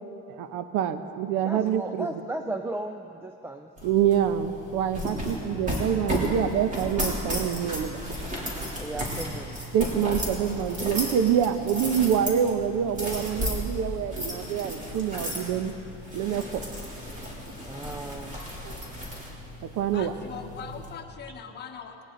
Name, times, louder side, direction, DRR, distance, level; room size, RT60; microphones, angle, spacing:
voice 1, 0.3-2.2 3.8-8.0 9.7-15.7 16.1-16.6 18.6-18.8 19.6-20.1, right 9 dB, 85° right, 10 dB, 1.0 m, -26 dB
voice 2, 1.5-3.7 8.8-9.6 17.7-18.5, right 2 dB, 10° right, 6 dB, 0.4 m, -35 dB
sound 1, 3.8-20.9, equal, 25° right, 3.2 m, -34 dB
voice 3, 19.9-22.0, left 7 dB, 35° left, 3 dB, 1.3 m, -41 dB
19.0 x 19.0 x 3.9 m, 3.0 s
cardioid pair, 145°, 29 cm